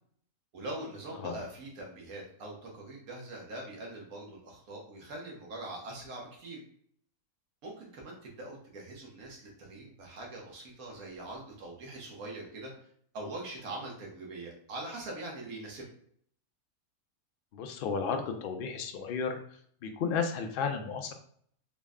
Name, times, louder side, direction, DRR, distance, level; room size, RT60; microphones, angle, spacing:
voice 1, 0.5-6.6 7.6-12.7 13.1-15.8, right 2 dB, 80° right, -2 dB, 1.5 m, -42 dB
voice 2, 17.5-19.4 19.8-21.1, left 5 dB, 75° left, 5 dB, 0.5 m, -33 dB
3.9 x 2.1 x 3.5 m, 0.62 s
omnidirectional pair, 1.5 m